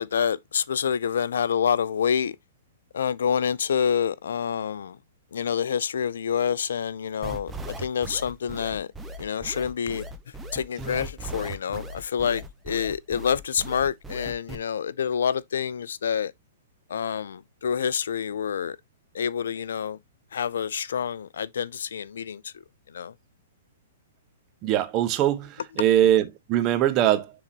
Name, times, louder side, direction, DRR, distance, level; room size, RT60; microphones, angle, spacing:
voice 1, 0.0-2.3 2.9-5.0 5.3-8.9 9.2-10.0 10.5-16.3 16.9-18.8 19.1-20.0 20.3-22.5 22.9-23.1, left 7 dB, 65° left, 0.4 m, -27 dB
sound 1, 7.2-14.6, right 1 dB, 10° right, 1.1 m, -37 dB
voice 2, 24.6-27.3, right 12 dB, 35° right, 1.1 m, -22 dB
9.6 x 3.9 x 2.8 m
figure-of-eight pair, 110°, 0 cm